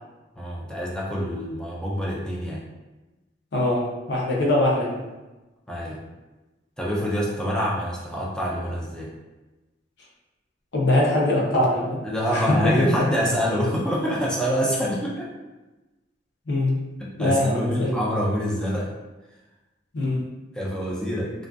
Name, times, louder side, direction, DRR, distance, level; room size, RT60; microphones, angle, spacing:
voice 1, 0.4-2.6 5.7-6.0 6.8-9.1 12.0-15.3 17.0-18.9 20.5-21.3, equal, 5° left, -5 dB, 0.4 m, -26 dB
voice 2, 3.5-5.0 10.7-12.0 12.3-13.1 16.5-16.9 17.2-18.0 19.9-20.2, left 1 dB, 65° left, -4 dB, 0.6 m, -22 dB
2.4 x 2.4 x 2.2 m, 1.1 s
head